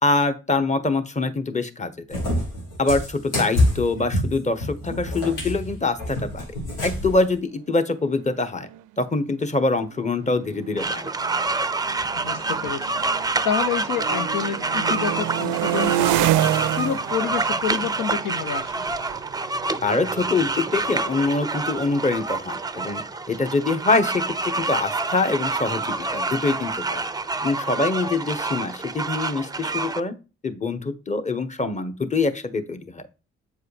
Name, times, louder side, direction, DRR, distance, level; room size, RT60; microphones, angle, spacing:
voice 1, 0.0-2.2 2.8-6.4 6.8-8.7 9.0-11.1 19.8-23.0 23.3-27.1 27.4-30.2 30.4-33.0, left 3 dB, 20° left, 8 dB, 1.1 m, -24 dB
Cat, 2.1-7.2, left 1 dB, 90° left, 1.6 m, -26 dB
sound 1, 8.1-8.2 8.4-8.8 9.6-13.5 13.8-20.5, right 14 dB, 65° right, 0.5 m, -28 dB
sound 2, 10.8-30.0, right 3 dB, 10° right, 0.5 m, -27 dB
voice 2, 12.1-12.9 13.4-16.3 16.8-18.9, left 8 dB, 65° left, 10 dB, 0.7 m, -28 dB
8.0 x 4.7 x 3.3 m, 0.32 s
hypercardioid pair, 45°, 33 cm